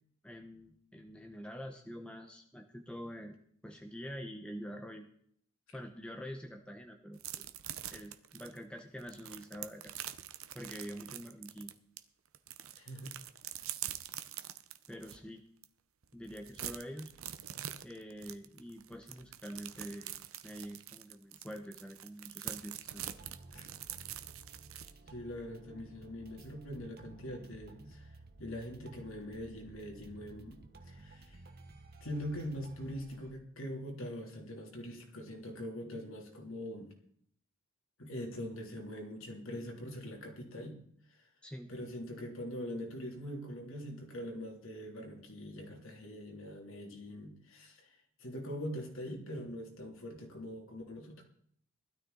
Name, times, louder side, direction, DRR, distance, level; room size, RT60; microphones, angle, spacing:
voice 1, 0.2-3.4 3.6-5.1 5.7-7.5 7.9-9.9 10.5-11.7 14.9-15.4 16.1-17.1 17.8-20.1 20.4-23.1 41.4-41.7, equal, 5° left, 3 dB, 0.9 m, -46 dB
sound 1, 7.2-12.0 12.3-15.2 15.6-15.7 16.0-24.9, right 11 dB, 75° right, 0.8 m, -44 dB
voice 2, 12.8-13.1 23.5-23.7 25.1-28.1 28.4-30.6 30.8-31.4 32.0-36.9 38.0-40.7 41.7-47.9 48.2-51.2, equal, 70° left, 1 dB, 3.0 m, -43 dB
sound 2, 23.0-33.3, right 2 dB, 50° right, 1.2 m, -54 dB
16.5 x 12.5 x 3.9 m, 0.65 s
head